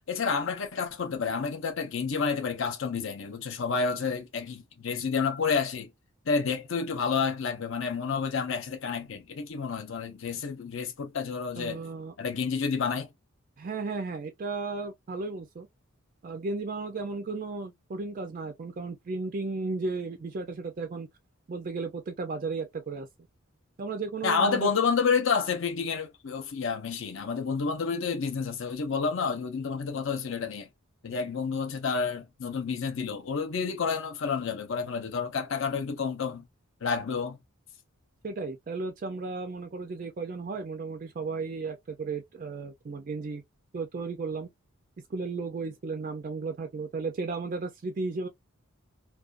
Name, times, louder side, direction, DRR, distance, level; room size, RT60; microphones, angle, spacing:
voice 1, 0.1-5.9 6.3-11.8 12.2-13.1 24.2-30.7 31.0-36.4 36.8-37.4, left 5 dB, 60° left, 0.6 m, -29 dB
voice 2, 11.6-12.1 13.6-15.7 16.2-21.1 21.5-23.1 23.8-24.7 38.2-43.4 43.7-44.5 45.1-48.3, right 3 dB, 35° right, 0.3 m, -34 dB
2.4 x 2.2 x 2.3 m
head